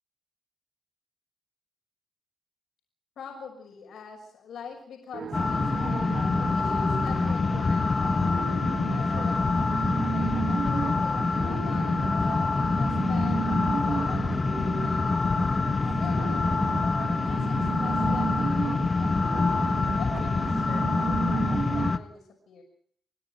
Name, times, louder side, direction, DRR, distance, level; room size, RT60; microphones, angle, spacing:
voice 1, 3.2-8.3 8.9-12.3 12.8-13.4 13.8-16.5 17.1-19.3 19.9-22.6, left 6 dB, 80° left, 1 dB, 6.2 m, -44 dB
sound 1, 5.1-21.9, right 7 dB, 65° right, 1.4 m, -34 dB
sound 2, 5.3-22.0, left 4 dB, 40° left, 1.5 m, -26 dB
29.0 x 10.0 x 9.3 m, 0.62 s
cardioid pair, 60°, 0 cm